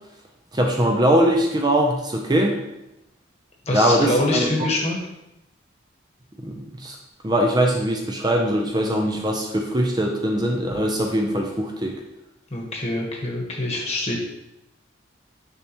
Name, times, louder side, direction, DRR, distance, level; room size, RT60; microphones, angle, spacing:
voice 1, 0.5-2.6 3.7-4.7 6.4-6.9 7.2-12.0, right 1 dB, 20° right, 1 dB, 0.6 m, -21 dB
voice 2, 3.7-5.0 12.5-14.2, left 1 dB, 35° left, -1 dB, 1.3 m, -24 dB
6.8 x 5.9 x 3.0 m, 0.88 s
head